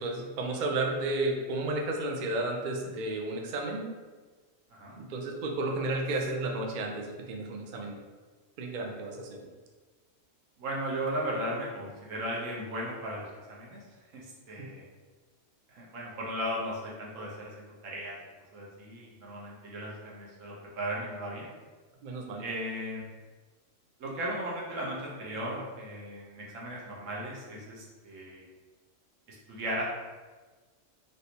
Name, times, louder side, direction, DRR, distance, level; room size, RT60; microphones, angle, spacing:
voice 1, 0.0-3.9 5.0-8.0 8.6-9.5 14.6-14.7 22.0-22.5, right 2 dB, 60° right, 1 dB, 0.5 m, -32 dB
voice 2, 10.6-13.8 14.1-14.8 15.7-18.2 18.5-21.5 22.4-23.1 24.0-28.4 29.3-29.8, right 1 dB, 85° right, -4 dB, 1.2 m, -36 dB
3.3 x 2.6 x 2.8 m, 1.3 s
omnidirectional pair, 1.3 m